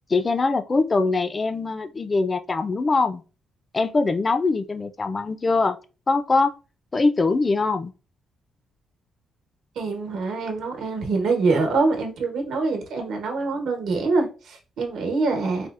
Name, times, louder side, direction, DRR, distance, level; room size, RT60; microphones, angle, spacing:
voice 1, 0.1-3.2 3.7-5.8 6.1-6.5 6.9-7.9, left 3 dB, 25° left, 0.3 m, -22 dB
voice 2, 9.7-15.7, right 3 dB, 80° right, 1.0 m, -24 dB
4.1 x 2.3 x 2.4 m
cardioid pair, 140°, 0 cm